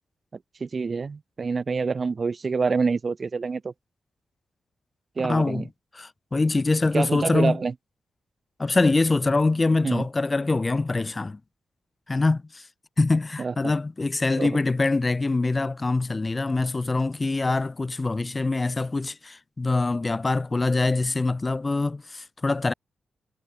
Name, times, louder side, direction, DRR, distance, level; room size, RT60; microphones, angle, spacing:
voice 1, 0.6-3.7 5.2-5.7 6.9-7.7 9.8-10.1 13.4-13.7 14.4-14.6, right 4 dB, 45° right, 0.7 m, -26 dB
voice 2, 5.2-5.7 6.0-7.6 8.6-11.4 12.1-12.6 13.0-22.7, left 3 dB, 30° left, 0.7 m, -24 dB
cardioid pair, 65°, 0 cm